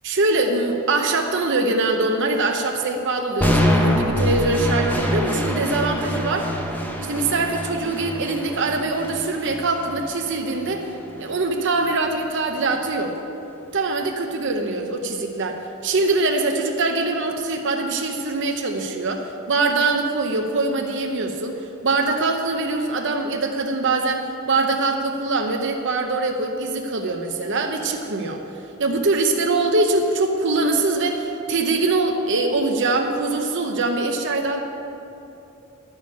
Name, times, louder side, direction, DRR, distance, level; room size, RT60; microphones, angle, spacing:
voice 1, 0.0-6.5 7.0-10.9 11.2-13.1 13.7-28.4 28.8-34.6, right 3 dB, 60° right, 3 dB, 0.8 m, -23 dB
sound 1, 3.4-11.4, equal, 10° left, 0.8 m, -25 dB
11.5 x 6.4 x 8.4 m, 2.9 s
head